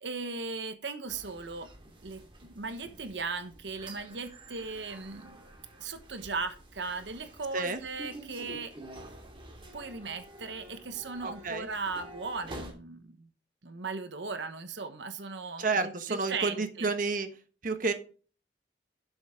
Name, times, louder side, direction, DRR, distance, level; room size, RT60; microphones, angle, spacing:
voice 1, 0.0-1.7 2.0-2.2 2.5-5.4 5.8-8.7 9.7-13.3 13.6-16.9, right 4 dB, 80° right, 9 dB, 1.1 m, -37 dB
sound 1, 1.1-12.7, right 1 dB, 30° right, 2.5 m, -49 dB
voice 2, 11.2-11.7 15.6-17.3 17.6-17.9, right 4 dB, 50° right, 8 dB, 1.2 m, -30 dB
11.5 x 7.6 x 3.6 m, 0.37 s
head